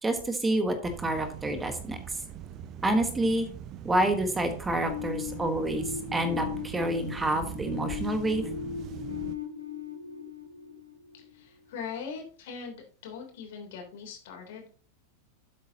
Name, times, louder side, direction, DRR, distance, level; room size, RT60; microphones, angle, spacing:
voice 1, 0.0-2.2 2.8-3.5 3.8-8.5, right 1 dB, 10° right, 7 dB, 1.4 m, -28 dB
sound 1, 0.8-9.4, right 10 dB, 35° right, 0.6 m, -42 dB
sound 2, 4.8-11.6, left 9 dB, 80° left, 2.2 m, -38 dB
voice 2, 11.1-14.7, left 6 dB, 55° left, 3 dB, 3.4 m, -41 dB
12.0 x 8.3 x 2.9 m, 0.43 s
figure-of-eight pair, 90°, 0 cm